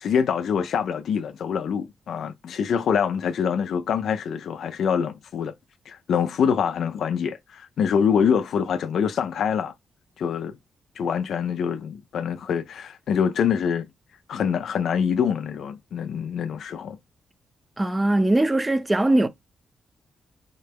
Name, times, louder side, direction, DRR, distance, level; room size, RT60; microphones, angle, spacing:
voice 1, 0.0-5.5 5.9-9.7 10.2-10.6 11.0-13.9 14.3-17.0, left 7 dB, 75° left, 0.3 m, -25 dB
voice 2, 17.8-19.3, right 1 dB, 20° right, 0.5 m, -20 dB
3.7 x 2.1 x 3.3 m
cardioid pair, 60°, 0 cm